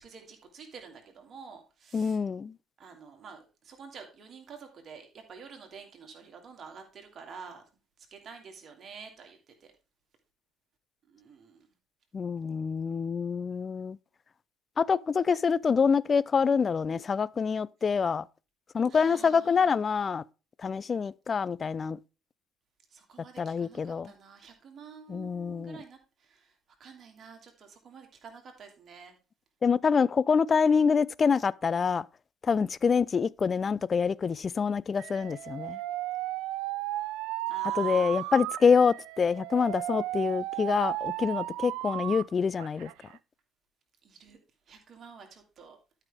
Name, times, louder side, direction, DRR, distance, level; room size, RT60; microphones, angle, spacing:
voice 1, 0.0-2.2 2.8-7.6 8.1-9.7 11.1-11.7 18.9-19.8 22.9-26.5 26.8-29.2 37.5-38.4 44.0-44.4 44.7-45.8, right 5 dB, 45° right, 2.6 m, -49 dB
voice 2, 1.9-2.5 12.1-14.0 14.8-18.2 18.7-20.2 20.6-22.0 23.4-24.1 25.1-25.8 29.6-32.1 32.4-35.8 37.8-42.9, left 6 dB, 35° left, 0.4 m, -26 dB
Alarm, 35.0-42.2 42.6-43.2, right 16 dB, 65° right, 0.3 m, -34 dB
12.0 x 5.7 x 3.5 m
figure-of-eight pair, 50°, 0 cm